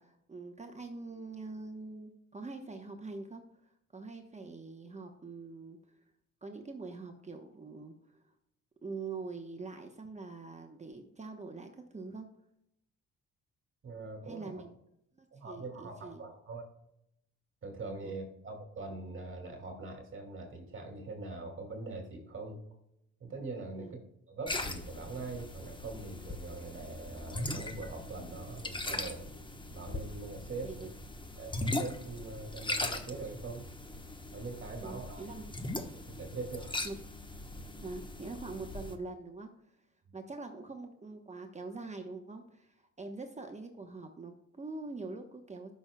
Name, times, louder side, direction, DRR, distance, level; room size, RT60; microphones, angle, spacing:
voice 1, 0.0-6.0 6.4-8.2 8.8-12.3 14.3-14.8 15.1-16.3 18.0-18.1 23.7-24.0 30.6-30.9 34.8-35.4 36.8-37.0 37.8-39.8 40.1-45.7, right 3 dB, 25° right, 4 dB, 1.0 m, -44 dB
voice 2, 13.8-14.6 15.3-16.6 17.6-22.6 23.2-29.3 29.7-30.9 31.4-33.7 34.3-35.2 35.9-36.9, right 3 dB, 40° right, 2 dB, 2.3 m, -43 dB
sound 1, 24.5-38.9, left 2 dB, 15° left, 1.0 m, -40 dB
13.5 x 6.2 x 2.2 m, 0.78 s
cardioid pair, 90°, 30 cm